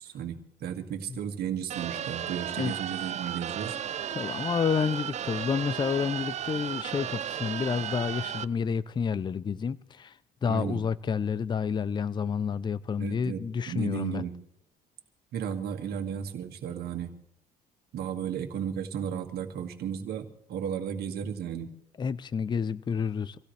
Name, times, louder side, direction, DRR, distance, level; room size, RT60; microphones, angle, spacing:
voice 1, 0.0-3.8 10.4-10.9 13.0-14.4 15.3-17.1 17.9-21.7, right 8 dB, 70° right, 2.1 m, -34 dB
sound 1, 1.7-8.4, right 10 dB, 40° right, 0.5 m, -34 dB
voice 2, 4.1-14.2 22.0-23.4, left 6 dB, 25° left, 0.5 m, -29 dB
26.0 x 16.5 x 3.3 m
cardioid pair, 110°, 17 cm